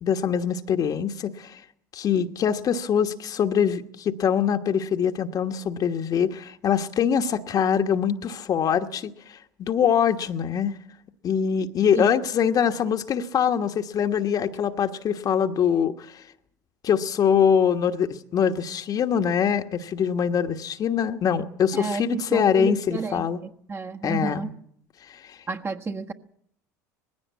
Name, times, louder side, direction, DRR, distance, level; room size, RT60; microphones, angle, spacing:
voice 1, 0.0-1.6 1.9-10.7 11.2-16.2 16.8-23.4 24.0-24.4 25.1-25.4, left 8 dB, 45° left, 1.3 m, -23 dB
voice 2, 21.7-24.5 25.5-26.1, right 4 dB, 25° right, 1.4 m, -31 dB
19.5 x 16.0 x 8.3 m
hypercardioid pair, 75°, 9 cm